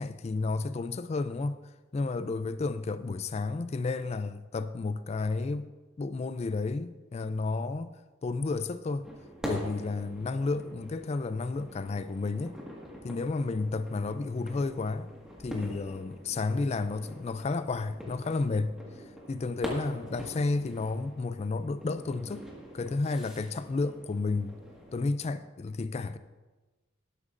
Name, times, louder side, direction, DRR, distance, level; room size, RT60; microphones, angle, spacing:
voice 1, 0.0-1.6 1.9-5.7 6.0-7.9 8.2-9.1 9.4-12.6 13.0-15.1 15.4-18.8 19.3-22.5 22.7-24.6 24.9-26.2, left 3 dB, 30° left, 0.3 m, -31 dB
sound 1, 9.0-25.0, equal, 5° right, 1.7 m, -44 dB
12.5 x 12.0 x 2.5 m
head